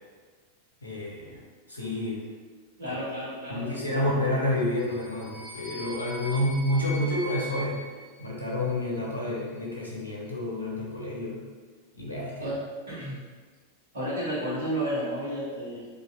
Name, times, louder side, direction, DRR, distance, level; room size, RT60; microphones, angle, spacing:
voice 1, 0.8-1.4 1.7-2.2 2.9-3.0 3.5-7.8 8.2-11.4 11.9-12.6, left 1 dB, 85° left, -4 dB, 0.6 m, -29 dB
voice 2, 2.8-4.2 12.4-12.6 12.9-13.2 13.9-15.9, right 1 dB, 65° right, -8 dB, 1.0 m, -32 dB
sound 1, 4.6-8.9, equal, 10° left, 0.7 m, -41 dB
2.6 x 2.3 x 2.3 m, 1.5 s
figure-of-eight pair, 90°, 0 cm